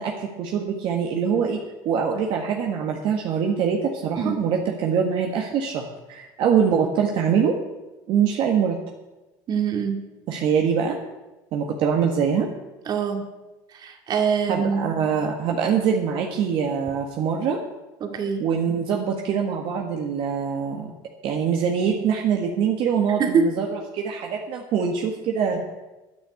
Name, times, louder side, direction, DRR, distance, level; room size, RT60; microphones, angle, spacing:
voice 1, 0.0-1.6 1.8-7.5 8.1-8.8 10.3-10.9 11.5-12.5 14.5-17.6 18.4-20.9 21.2-25.6, right 7 dB, 60° right, 1 dB, 1.6 m, -23 dB
voice 2, 9.5-10.0 12.9-13.2 13.7-14.8 18.0-18.4 23.2-23.5, right 6 dB, 45° right, 4 dB, 2.2 m, -23 dB
10.5 x 9.8 x 8.3 m, 1.1 s
supercardioid pair, 110°, 10 cm